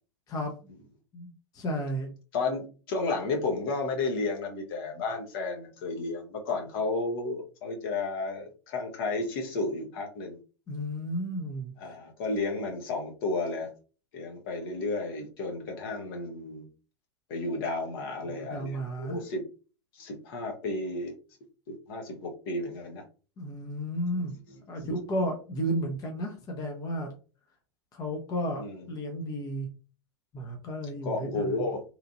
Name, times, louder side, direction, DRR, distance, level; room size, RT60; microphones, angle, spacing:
voice 1, 1.1-2.1 10.7-11.7 18.2-19.2 23.4-24.3 24.7-27.1 27.9-29.7 30.3-31.7, equal, 25° left, 3 dB, 0.7 m, -33 dB
voice 2, 2.3-10.4 11.8-13.7 14.1-16.6 17.3-19.4 19.9-21.1 21.7-23.0 24.1-24.6 28.5-28.9 31.0-31.8, left 3 dB, 55° left, 2 dB, 0.9 m, -32 dB
2.9 x 2.5 x 2.5 m, 0.36 s
figure-of-eight pair, 95°, 15 cm